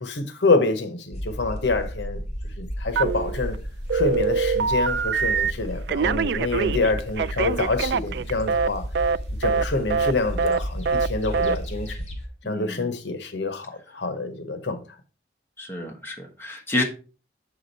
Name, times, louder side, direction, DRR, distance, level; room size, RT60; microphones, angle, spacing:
voice 1, 0.0-2.2 2.6-3.6 3.9-8.9 9.4-12.0 12.4-14.8, left 3 dB, 75° left, 0.9 m, -26 dB
sound 1, 1.1-12.3, equal, 35° left, 1.6 m, -33 dB
Telephone, 3.0-3.6 3.9-5.5 5.9-8.7 9.0-9.2 9.4-9.6 9.9-10.1 10.4-10.6 10.9-11.1 11.3-11.6, right 5 dB, 65° right, 0.3 m, -24 dB
voice 2, 12.4-12.9 15.6-16.8, left 1 dB, 15° left, 1.3 m, -29 dB
7.0 x 5.0 x 4.0 m
head